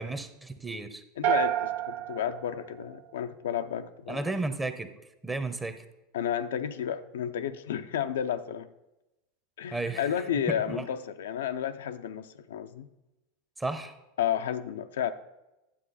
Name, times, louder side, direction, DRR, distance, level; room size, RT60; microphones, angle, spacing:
voice 1, 0.0-1.0 4.1-4.9 5.2-5.8 9.7-10.1 10.5-10.9 13.6-14.0, right 2 dB, 10° right, 0.9 m, -33 dB
voice 2, 1.2-4.2 6.1-8.7 9.6-12.9 14.2-15.1, left 9 dB, 85° left, 0.5 m, -32 dB
sound 1, 1.2-3.5, right 12 dB, 70° right, 0.7 m, -30 dB
10.0 x 7.4 x 4.1 m
hypercardioid pair, 110°, 0 cm